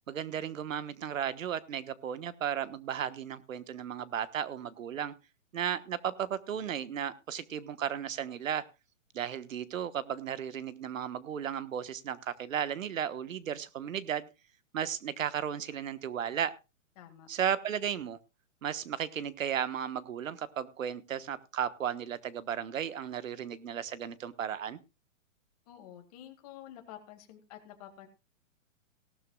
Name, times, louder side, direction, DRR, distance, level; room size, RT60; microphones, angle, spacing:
voice 1, 0.1-5.1 5.5-8.6 9.1-14.3 14.7-16.6 17.3-18.2 18.6-24.8, right 9 dB, 75° right, 15 dB, 1.3 m, -35 dB
voice 2, 17.0-17.3 25.7-28.1, left 11 dB, 30° left, 6 dB, 2.1 m, -49 dB
18.0 x 12.5 x 2.3 m, 0.28 s
hypercardioid pair, 165°, 40 cm